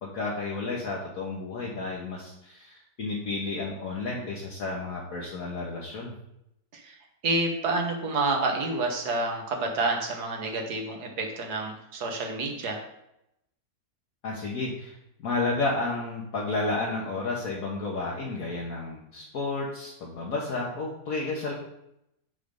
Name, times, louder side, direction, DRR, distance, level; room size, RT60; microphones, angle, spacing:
voice 1, 0.0-6.1 14.2-21.5, left 3 dB, 65° left, -4 dB, 1.6 m, -31 dB
voice 2, 7.2-12.8, right 2 dB, 80° right, 2 dB, 1.7 m, -29 dB
9.2 x 3.4 x 5.2 m, 0.82 s
omnidirectional pair, 1.7 m